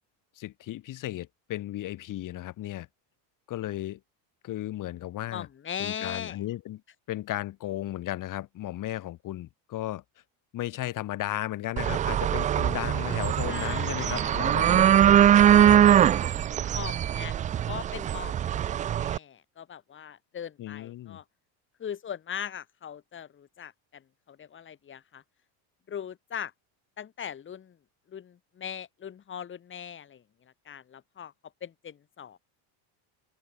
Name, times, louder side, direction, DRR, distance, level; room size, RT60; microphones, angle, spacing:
voice 1, 0.4-2.9 3.5-4.0 4.4-5.5 5.8-6.8 7.1-10.0 10.5-14.9 15.5-15.9 20.6-21.2, left 14 dB, 40° left, 4.4 m, -35 dB
voice 2, 5.3-6.4 13.4-14.4 16.7-17.4 17.7-21.2 21.8-25.2 25.9-26.5 27.0-27.8 28.1-30.2 30.6-31.3 31.6-32.4, left 8 dB, 25° left, 4.6 m, -40 dB
sound 1, 11.8-19.2, right 10 dB, 20° right, 0.3 m, -22 dB
open air
cardioid pair, 160°, 47 cm